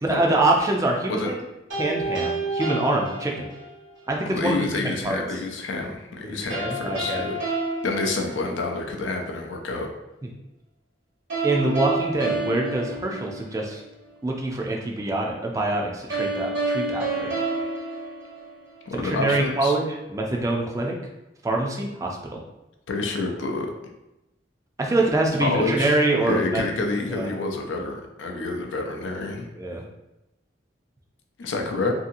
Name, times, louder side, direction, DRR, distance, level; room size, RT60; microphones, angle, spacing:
voice 1, 0.0-1.3 1.8-3.5 4.1-5.2 6.2-7.2 11.4-13.8 14.2-17.3 18.9-20.9 21.4-22.4 24.8-26.6 27.1-27.4 29.6-29.8, right 2 dB, 15° right, 0 dB, 0.4 m, -25 dB
sound 1, 1.7-3.9 6.5-8.9 11.3-13.8 16.1-18.9, right 2 dB, 75° right, 1.0 m, -29 dB
voice 2, 4.3-7.4 7.8-9.9 18.9-19.7 22.9-23.7 25.4-25.9 26.2-29.5 31.4-31.9, left 3 dB, 85° left, 2 dB, 0.5 m, -28 dB
2.7 x 2.7 x 2.5 m, 0.94 s
head